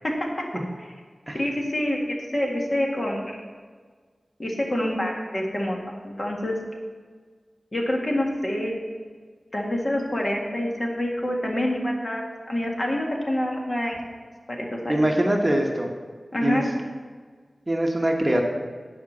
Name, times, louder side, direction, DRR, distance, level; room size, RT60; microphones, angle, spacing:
voice 1, 1.3-3.4 4.4-6.6 7.7-8.8 9.5-14.1 14.5-15.1 16.3-16.7, left 1 dB, 40° left, -1 dB, 1.9 m, -27 dB
voice 2, 14.9-15.9 16.4-16.6 17.7-18.4, right 1 dB, 20° right, 1 dB, 1.1 m, -22 dB
10.0 x 5.1 x 7.2 m, 1.5 s
wide cardioid pair, 75°, 0 cm